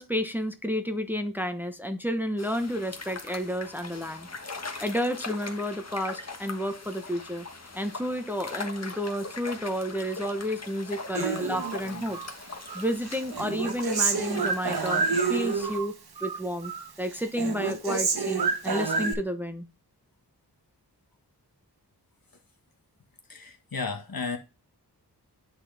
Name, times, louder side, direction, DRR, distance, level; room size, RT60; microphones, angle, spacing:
voice 1, 0.0-4.3 4.8-7.5 7.7-12.2 12.7-15.9 16.2-16.7 17.0-19.7, equal, 5° right, 0.9 m, -31 dB
sound 1, 2.4-15.8, left 3 dB, 40° left, 1.4 m, -41 dB
Human voice, 11.1-12.3 12.7-15.9 16.2-16.9 17.1-19.1, right 5 dB, 70° right, 1.3 m, -29 dB
voice 2, 23.3-24.4, left 4 dB, 60° left, 1.7 m, -33 dB
9.8 x 4.1 x 3.4 m
wide cardioid pair, 65°, 40 cm